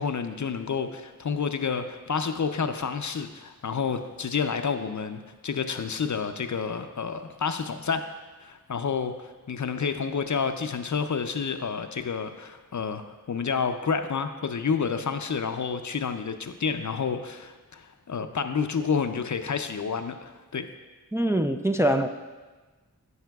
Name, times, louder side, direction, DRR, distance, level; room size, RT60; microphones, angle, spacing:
voice 1, 0.0-8.1 8.4-13.0 13.3-20.7, left 6 dB, 55° left, 8 dB, 0.5 m, -29 dB
voice 2, 21.1-22.1, right 1 dB, 10° right, 6 dB, 0.3 m, -23 dB
15.0 x 5.5 x 2.3 m, 1.3 s
wide cardioid pair, 45°, 36 cm